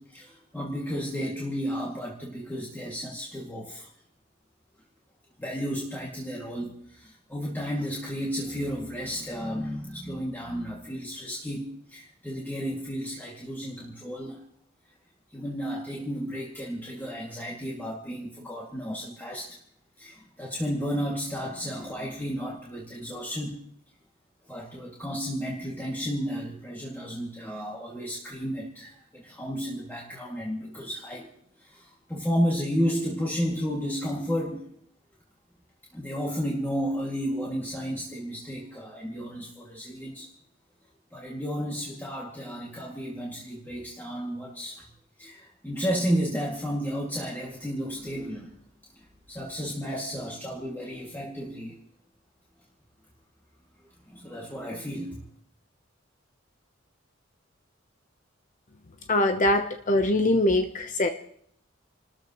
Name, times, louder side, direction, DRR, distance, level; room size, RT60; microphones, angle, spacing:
voice 1, 0.0-3.9 5.4-14.4 15.3-19.6 20.0-23.6 24.5-31.3 31.6-34.7 35.9-40.3 41.1-44.9 45.2-48.5 48.9-51.8 54.1-55.3, equal, 10° left, -4 dB, 2.2 m, -32 dB
voice 2, 59.1-61.1, left 1 dB, 40° left, 7 dB, 0.8 m, -23 dB
29.5 x 13.5 x 3.0 m, 0.66 s
head